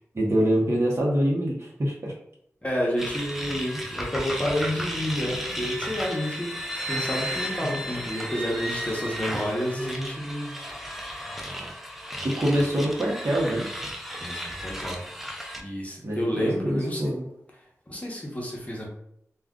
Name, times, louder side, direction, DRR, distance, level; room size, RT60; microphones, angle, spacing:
voice 1, 0.1-2.1 7.6-7.8 12.2-13.7 16.0-17.3, right 1 dB, 55° right, -3 dB, 0.8 m, -25 dB
voice 2, 2.6-10.6 14.2-15.0 15.6-17.0 17.9-18.9, equal, 25° left, -3 dB, 0.8 m, -30 dB
sound 1, 3.0-15.6, equal, 5° right, 0.4 m, -34 dB
2.4 x 2.3 x 3.6 m, 0.74 s
wide cardioid pair, 70°, 5 cm